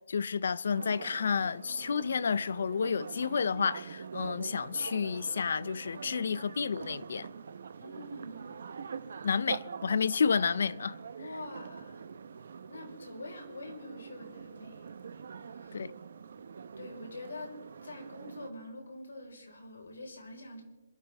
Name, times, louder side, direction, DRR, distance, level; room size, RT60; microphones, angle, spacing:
voice 1, 0.1-7.3 9.2-11.0 15.7-15.9, left 6 dB, 55° left, 0.5 m, -30 dB
sound 1, 0.7-18.5, right 6 dB, 55° right, 0.9 m, -45 dB
voice 2, 7.8-8.7 11.2-12.1 12.7-14.9 15.4-15.9 16.8-17.5 17.8-20.6, left 1 dB, 90° left, 4.7 m, -45 dB
26.5 x 13.0 x 3.5 m
hypercardioid pair, 175°, 0 cm